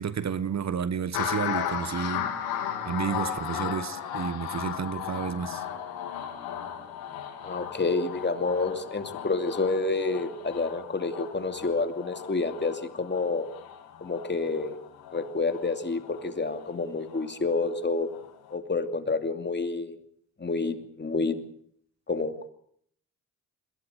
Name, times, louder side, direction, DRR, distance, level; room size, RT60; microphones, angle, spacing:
voice 1, 0.0-2.3 2.8-5.6, right 7 dB, 45° right, 1.2 m, -31 dB
sound 1, 1.1-17.8 18.1-18.5, left 9 dB, 80° left, 3.1 m, -36 dB
voice 2, 7.4-13.5 14.0-14.7 15.1-18.1 18.5-20.0 20.4-21.4 22.1-22.3, left 3 dB, 30° left, 2.7 m, -28 dB
22.0 x 16.5 x 8.1 m
supercardioid pair, 55°, 37 cm